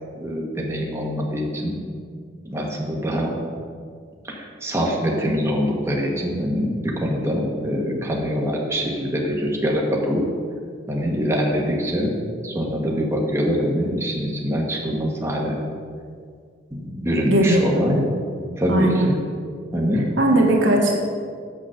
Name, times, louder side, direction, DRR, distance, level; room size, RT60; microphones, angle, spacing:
voice 1, 0.1-1.8 2.4-3.4 4.2-10.2 10.9-12.1 12.4-15.6 16.7-18.0 18.4-19.2 19.7-20.1, equal, 15° right, -2 dB, 1.1 m, -24 dB
voice 2, 17.3-18.0 18.7-19.1 20.2-21.0, right 1 dB, 85° right, -1 dB, 1.6 m, -18 dB
7.1 x 6.7 x 6.2 m, 2.1 s
head